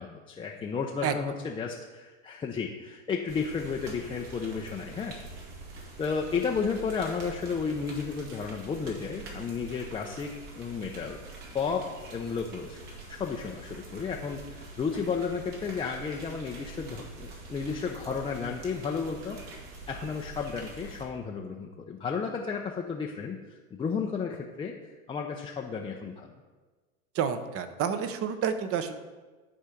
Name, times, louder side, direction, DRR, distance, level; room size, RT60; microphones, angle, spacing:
voice 1, 0.0-5.1 6.0-11.2 11.5-19.4 19.9-24.7 25.1-26.3, left 5 dB, 15° left, -1 dB, 0.5 m, -33 dB
sound 1, 3.3-21.0, right 3 dB, 60° right, 2.3 m, -45 dB
voice 2, 27.1-28.9, right 7 dB, 35° right, 10 dB, 0.8 m, -29 dB
11.0 x 4.5 x 5.1 m, 1.3 s
hypercardioid pair, 105°, 42 cm